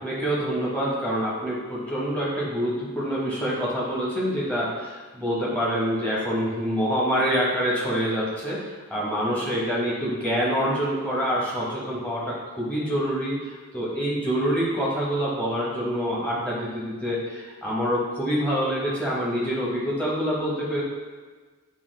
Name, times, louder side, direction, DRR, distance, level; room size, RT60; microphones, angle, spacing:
voice 1, 0.0-20.8, equal, 5° left, -6 dB, 0.8 m, -26 dB
5.5 x 2.3 x 3.1 m, 1.4 s
head